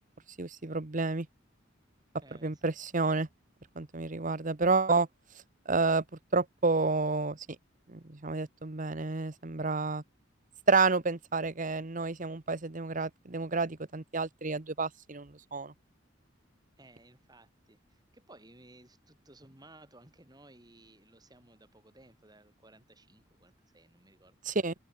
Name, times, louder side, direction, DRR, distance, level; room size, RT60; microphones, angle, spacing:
voice 1, 0.4-1.3 2.4-3.3 3.8-5.1 5.7-6.0 6.3-7.4 7.9-10.0 10.7-15.7 24.4-24.7, right 3 dB, 40° right, 1.1 m, -29 dB
voice 2, 2.2-2.8 16.8-24.6, right 2 dB, 20° right, 6.1 m, -58 dB
head